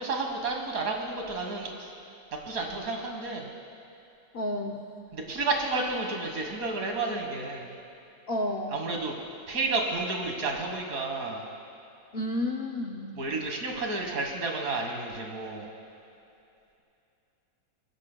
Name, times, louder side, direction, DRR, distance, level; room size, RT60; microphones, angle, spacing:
voice 1, 0.0-1.9 2.5-3.5 5.1-7.8 8.7-9.2 9.5-11.4 13.2-15.7, right 3 dB, 50° right, 2 dB, 1.8 m, -31 dB
voice 2, 4.3-4.8 8.3-8.8 12.1-13.1, left 1 dB, 70° left, 3 dB, 0.5 m, -31 dB
21.0 x 17.0 x 2.2 m, 2.7 s
omnidirectional pair, 2.0 m